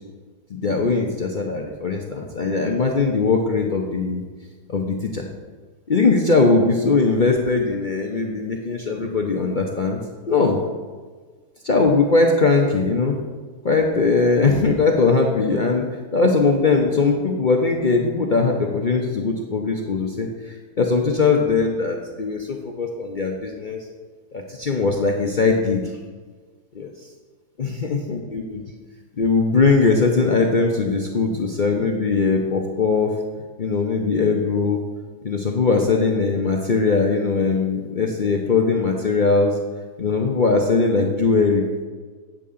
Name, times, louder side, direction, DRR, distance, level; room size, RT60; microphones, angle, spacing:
voice 1, 0.5-4.2 4.7-5.2 5.9-10.0 10.3-10.6 11.6-13.2 13.6-15.8 16.1-23.9 24.3-25.8 26.7-26.9 27.6-28.6 29.2-33.1 33.6-34.8 35.2-39.5 40.0-41.8, left 4 dB, 55° left, 1 dB, 0.5 m, -20 dB
8.8 x 7.0 x 3.7 m, 1.4 s
omnidirectional pair, 1.8 m